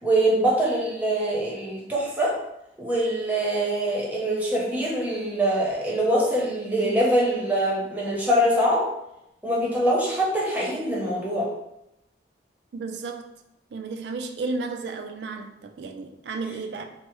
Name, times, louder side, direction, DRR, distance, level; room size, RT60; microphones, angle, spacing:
voice 1, 0.0-2.3 2.8-8.8 9.4-11.5, right 1 dB, 10° right, 0.7 m, -23 dB
voice 2, 12.7-13.3 13.7-16.8, right 3 dB, 70° right, 0.3 m, -33 dB
3.3 x 2.1 x 3.0 m
head